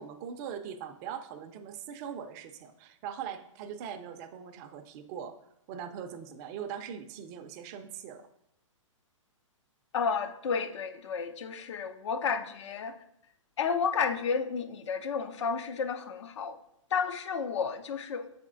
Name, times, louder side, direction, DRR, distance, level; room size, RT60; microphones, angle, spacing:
voice 1, 0.0-8.3, right 8 dB, 30° right, 0.5 m, -41 dB
voice 2, 9.9-13.0 13.6-16.6 16.9-18.3, left 6 dB, 60° left, 0.6 m, -31 dB
5.9 x 4.3 x 3.8 m
hypercardioid pair, 125°, 17 cm